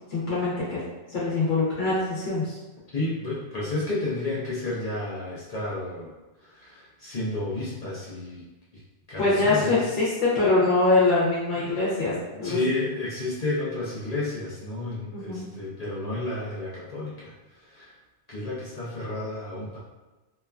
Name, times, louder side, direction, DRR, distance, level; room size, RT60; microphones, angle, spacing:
voice 1, 0.1-0.8 1.1-2.5 9.2-12.6 15.1-15.5, left 3 dB, 70° left, -8 dB, 1.0 m, -23 dB
voice 2, 2.9-6.1 6.4-8.4 9.1-9.9 11.6-11.7 12.4-17.9 18.3-19.8, left 2 dB, 45° left, -7 dB, 0.5 m, -31 dB
3.0 x 2.2 x 2.3 m, 1.1 s
omnidirectional pair, 1.2 m